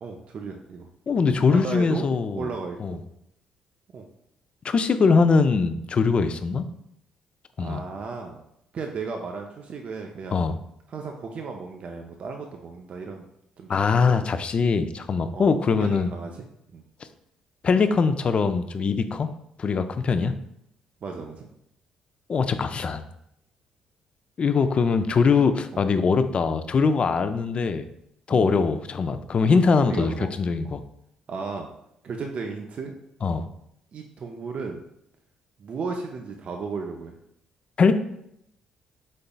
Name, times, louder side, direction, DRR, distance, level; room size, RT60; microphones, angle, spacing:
voice 1, 0.0-0.9 1.5-2.1 2.4-3.0 3.9-4.1 7.6-8.4 8.7-10.4 10.9-13.3 13.6-14.2 15.3-16.5 16.7-16.8 21.0-21.5 25.7-25.9 28.3-28.6 29.5-29.6 29.9-30.3 31.3-31.7 32.0-32.9 33.9-34.8 35.6-37.2, right 4 dB, 50° right, 2 dB, 0.5 m, -35 dB
voice 2, 1.1-2.5 2.8-3.0 4.6-6.6 7.6-7.8 10.3-10.6 13.7-16.1 17.6-19.3 19.6-20.3 22.3-23.0 24.4-27.9 28.3-30.1 30.4-30.8 33.2-33.5 37.8-37.9, left 5 dB, 45° left, 10 dB, 0.4 m, -22 dB
5.3 x 3.8 x 2.3 m, 0.78 s
hypercardioid pair, 55°, 3 cm